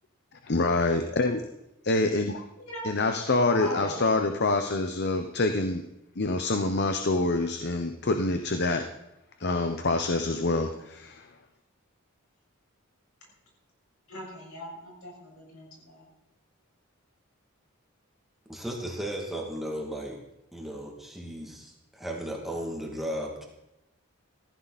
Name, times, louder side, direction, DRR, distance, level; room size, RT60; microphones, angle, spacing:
voice 1, 0.5-1.4 1.8-2.4 2.8-5.8 6.2-8.9 9.4-11.2, left 2 dB, 50° left, 6 dB, 0.9 m, -26 dB
voice 2, 3.5-4.0 14.1-16.1, left 1 dB, 85° left, -2 dB, 6.9 m, -39 dB
voice 3, 18.5-20.2 20.5-23.4, equal, ahead, -2 dB, 2.4 m, -35 dB
15.0 x 15.0 x 4.2 m, 0.88 s
head